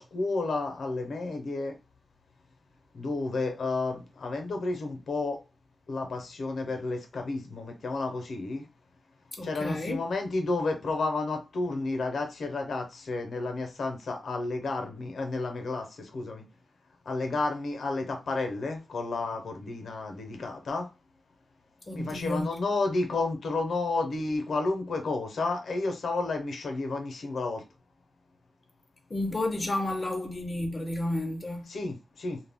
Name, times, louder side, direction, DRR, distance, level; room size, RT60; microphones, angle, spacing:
voice 1, 0.0-1.8 2.9-5.4 5.9-8.6 9.4-16.5 17.1-20.9 21.9-27.6 31.7-32.4, left 3 dB, 70° left, 0.6 m, -31 dB
voice 2, 9.3-10.0 21.9-22.6 29.1-31.7, left 1 dB, 25° left, 0.6 m, -31 dB
2.2 x 2.1 x 3.4 m
wide cardioid pair, 155°, 0 cm